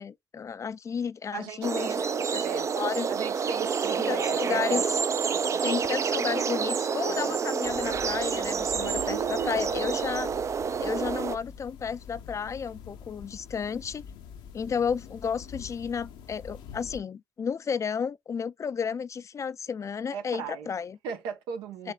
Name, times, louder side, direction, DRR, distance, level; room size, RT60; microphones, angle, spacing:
voice 1, 0.0-2.4 2.8-3.1 4.1-4.8 5.6-10.3 10.8-14.0 14.5-21.0 21.8-21.9, left 6 dB, 40° left, 0.3 m, -32 dB
voice 2, 1.3-2.0 2.4-2.7 3.1-4.8 5.3-5.6 7.1-7.4 8.8-9.7 20.1-20.7 21.0-21.9, right 7 dB, 85° right, 0.9 m, -37 dB
sound 1, 1.6-11.4, right 6 dB, 40° right, 0.4 m, -28 dB
sound 2, 7.6-17.0, left 7 dB, 80° left, 0.7 m, -45 dB
5.1 x 3.6 x 2.3 m
supercardioid pair, 65°, 8 cm